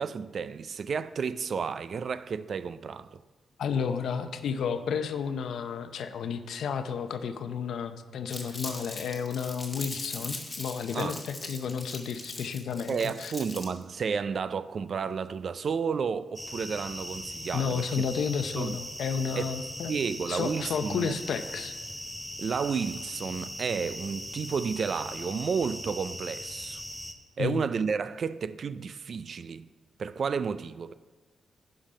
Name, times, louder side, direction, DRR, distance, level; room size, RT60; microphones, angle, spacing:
voice 1, 0.0-3.2 10.9-11.2 12.9-17.9 18.6-18.8 19.4-19.5 19.9-21.2 22.4-26.8 27.4-29.7 30.0-30.9, right 6 dB, 50° right, 0.3 m, -31 dB
voice 2, 3.6-13.3 17.5-19.9 20.3-21.7 27.4-27.6, left 6 dB, 70° left, 0.6 m, -32 dB
Crumpling crinkling, 8.3-13.8, left 2 dB, 20° left, 1.5 m, -40 dB
sound 1, 16.4-27.1, left 1 dB, 5° left, 0.7 m, -40 dB
11.0 x 5.2 x 5.1 m
cardioid pair, 130°, 0 cm